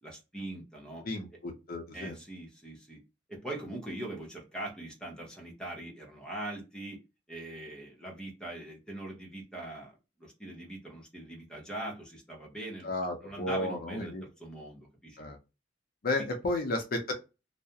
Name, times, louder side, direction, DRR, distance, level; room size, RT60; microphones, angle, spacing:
voice 1, 0.0-1.0 1.9-3.0 3.3-7.0 7.3-12.9 13.2-15.2 16.2-16.3, right 1 dB, 5° left, -2 dB, 0.7 m, -42 dB
voice 2, 1.0-2.2 12.8-14.2 15.2-15.4 16.0-17.1, left 2 dB, 50° left, 3 dB, 0.5 m, -33 dB
2.3 x 2.0 x 2.7 m, 0.27 s
head